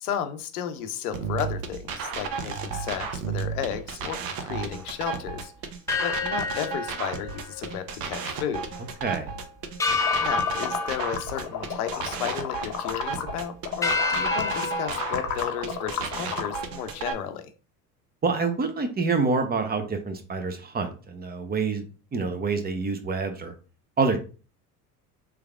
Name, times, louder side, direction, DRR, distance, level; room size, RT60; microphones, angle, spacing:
voice 1, 0.0-5.5 6.0-8.6 10.2-17.5, left 9 dB, 75° left, 8 dB, 0.7 m, -33 dB
sound 1, 1.1-17.1, right 6 dB, 50° right, 0.8 m, -33 dB
sound 2, 5.9-8.4 8.7-8.8 9.8-12.3 12.8-13.2 13.8-16.6, left 4 dB, 10° left, 0.3 m, -30 dB
voice 2, 9.0-9.3 18.2-21.8 22.1-23.5 24.0-24.2, right 4 dB, 20° right, 7 dB, 0.7 m, -27 dB
sound 3, 10.1-13.4 13.7-16.6, left 9 dB, 40° left, 0.7 m, -33 dB
3.3 x 3.3 x 2.3 m, 0.36 s
hypercardioid pair, 70°, 45 cm